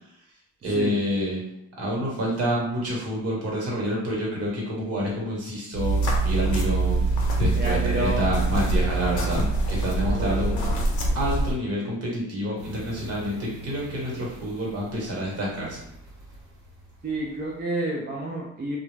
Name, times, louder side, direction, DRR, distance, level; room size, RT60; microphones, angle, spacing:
voice 1, 0.6-1.4 1.8-10.6 11.1-15.8, equal, 55° right, -4 dB, 1.2 m, -28 dB
sound 1, 5.7-11.5, right 2 dB, 75° left, 0.7 m, -24 dB
voice 2, 7.5-8.3 10.1-10.9 17.0-18.8, right 1 dB, 30° right, -3 dB, 0.5 m, -30 dB
sound 2, 12.6-17.6, right 2 dB, 80° right, 0.8 m, -45 dB
2.3 x 2.0 x 3.2 m, 0.79 s
cardioid pair, 90°, 30 cm